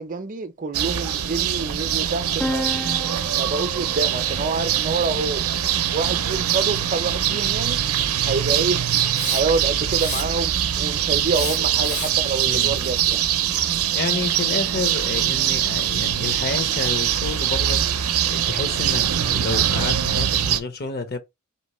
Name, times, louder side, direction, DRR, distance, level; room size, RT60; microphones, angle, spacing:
voice 1, 0.0-2.9 3.2-5.5 5.9-7.9 8.2-8.8 9.3-13.3, right 3 dB, 40° right, 0.6 m, -27 dB
sound 1, 0.7-20.6, right 10 dB, 85° right, 0.5 m, -23 dB
sound 2, 2.4-6.1, left 1 dB, 5° left, 0.4 m, -34 dB
Hiss, 9.1-9.6 10.0-10.6 11.3-12.3, left 4 dB, 75° left, 1.6 m, -31 dB
voice 2, 12.5-12.8 13.9-17.8 18.3-21.2, left 3 dB, 45° left, 0.8 m, -29 dB
4.4 x 3.0 x 3.0 m
head